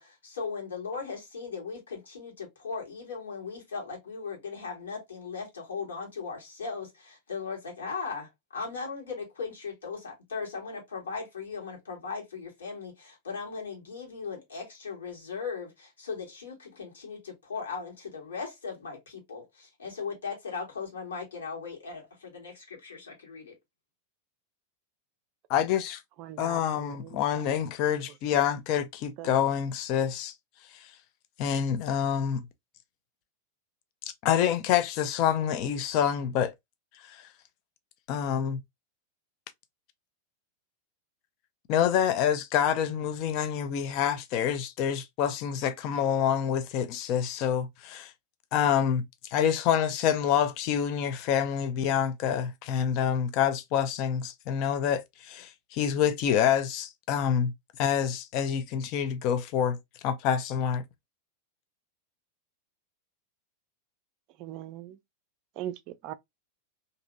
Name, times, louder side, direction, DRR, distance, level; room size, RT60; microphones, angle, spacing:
voice 1, 0.0-23.5, left 5 dB, 70° left, 1.5 m, -38 dB
voice 2, 25.5-26.0 26.4-30.3 30.7-30.9 31.4-32.5 34.2-36.5 37.1-37.3 38.1-38.6 41.7-48.1 48.5-57.5 57.8-60.8, left 9 dB, 40° left, 0.5 m, -27 dB
voice 3, 26.2-27.2 29.2-29.3 64.4-65.0 65.6-65.7 66.0-66.1, right 12 dB, 40° right, 0.4 m, -39 dB
2.9 x 2.6 x 2.5 m
figure-of-eight pair, 90°, 0 cm